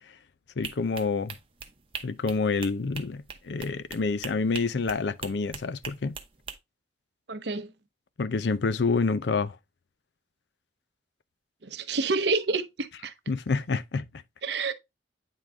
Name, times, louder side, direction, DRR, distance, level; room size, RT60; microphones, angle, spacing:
voice 1, 0.6-1.3 2.0-6.2 8.2-9.6 13.3-14.1, left 4 dB, 80° left, 0.5 m, -28 dB
sound 1, 0.6-6.6, right 6 dB, 30° right, 0.8 m, -41 dB
voice 2, 7.3-7.7 11.6-13.1 14.4-14.7, right 4 dB, 80° right, 0.8 m, -28 dB
9.0 x 3.8 x 3.4 m
head